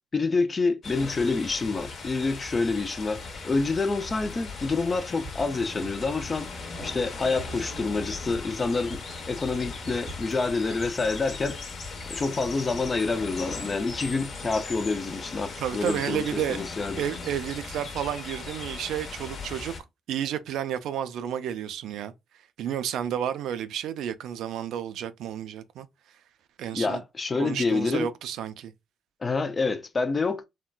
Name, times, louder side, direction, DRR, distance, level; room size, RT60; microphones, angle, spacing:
voice 1, 0.1-6.5 6.8-11.6 12.1-17.0 26.7-28.1 29.2-30.4, left 3 dB, 25° left, 0.4 m, -27 dB
sound 1, 0.8-19.8, left 4 dB, 45° left, 0.9 m, -38 dB
sound 2, 5.2-11.3, equal, 20° right, 0.7 m, -45 dB
voice 2, 15.6-16.6 17.0-19.7 20.1-22.1 22.6-25.9 26.6-27.0 27.4-28.7, right 9 dB, 75° right, 0.4 m, -31 dB
3.8 x 2.2 x 2.2 m
cardioid pair, 110°, 0 cm